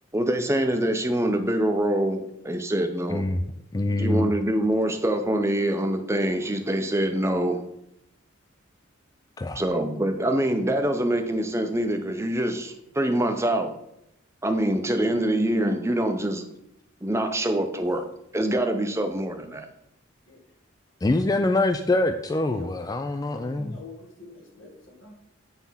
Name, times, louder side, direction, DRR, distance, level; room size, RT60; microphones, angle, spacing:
voice 1, 0.1-3.3 4.0-7.6 9.5-13.7 14.4-16.4 17.0-18.1 18.3-19.7, right 1 dB, 15° right, 6 dB, 0.7 m, -25 dB
voice 2, 3.1-3.4 3.7-4.3 9.4-9.6 21.0-23.8, left 2 dB, 20° left, 7 dB, 0.3 m, -24 dB
voice 3, 23.3-25.3, left 3 dB, 75° left, 1 dB, 1.8 m, -44 dB
9.3 x 3.5 x 5.6 m, 0.78 s
head